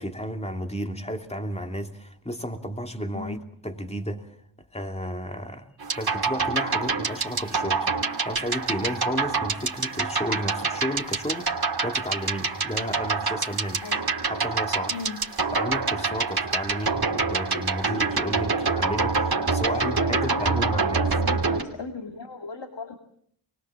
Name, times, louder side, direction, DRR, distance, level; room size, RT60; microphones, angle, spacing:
voice 1, 0.0-3.4 3.6-4.3 4.7-13.8 14.3-14.9 15.5-21.1, equal, 15° left, 2.9 m, -32 dB
voice 2, 3.1-3.5 13.8-14.0 14.9-15.2 19.7-23.0, left 4 dB, 65° left, 2.2 m, -36 dB
sound 1, 5.8-21.6, right 4 dB, 50° right, 3.1 m, -26 dB
24.0 x 21.0 x 7.3 m
cardioid pair, 45°, 46 cm